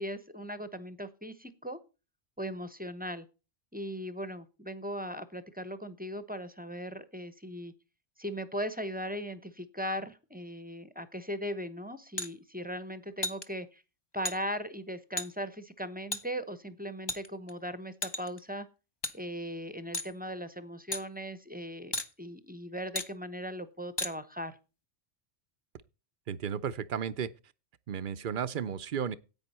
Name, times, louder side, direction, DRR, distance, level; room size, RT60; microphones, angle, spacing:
voice 1, 0.0-1.8 2.4-3.3 3.7-7.7 8.2-13.8 14.1-18.7 19.1-21.9 22.2-24.5, equal, 10° right, 0.8 m, -38 dB
sound 1, 12.2-12.3 13.2-13.4 14.2-14.4 15.2-15.3 16.1-16.2 17.1-17.5 18.0-18.4 19.0-19.1 19.9-20.1 20.9-21.0 21.9-22.1 22.9-23.1 24.0-24.1, left 2 dB, 25° left, 0.8 m, -33 dB
voice 2, 26.3-27.3 27.9-29.2, right 8 dB, 50° right, 0.7 m, -33 dB
10.5 x 8.7 x 4.3 m
omnidirectional pair, 1.2 m